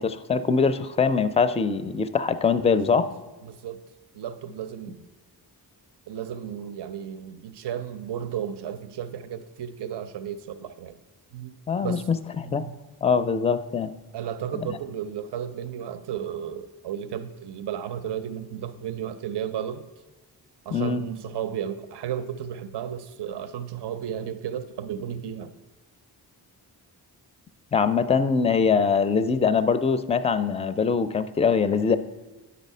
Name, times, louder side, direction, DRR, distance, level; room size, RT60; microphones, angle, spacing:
voice 1, 0.0-3.0 11.7-12.0 12.4-12.6 13.0-13.9 14.5-14.7 20.7-21.0 27.7-32.0, left 5 dB, 15° left, 12 dB, 0.4 m, -23 dB
voice 2, 2.7-3.0 3.4-3.8 4.1-5.1 6.1-11.0 11.3-11.5 11.8-12.1 12.4-12.7 14.1-19.9 20.7-25.5, right 9 dB, 75° right, 11 dB, 0.6 m, -34 dB
10.0 x 4.1 x 5.4 m, 1.2 s
cardioid pair, 65°, 41 cm